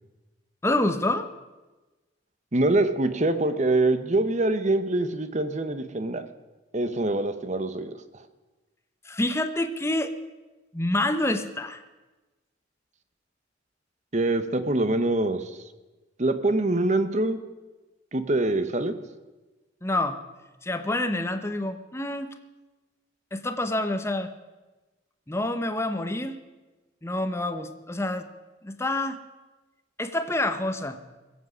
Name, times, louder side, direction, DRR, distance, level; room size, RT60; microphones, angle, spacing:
voice 1, 0.6-1.3 9.0-10.1 10.7-11.8 19.8-20.2 20.6-22.3 23.3-24.3 25.3-26.4 27.0-28.3 28.6-29.2 30.0-31.0, left 1 dB, 15° left, 8 dB, 0.8 m, -27 dB
voice 2, 2.5-6.3 6.7-7.9 14.1-15.6 16.2-17.4 18.1-18.9, right 2 dB, 40° right, 11 dB, 0.9 m, -24 dB
21.0 x 8.3 x 6.2 m, 1.2 s
head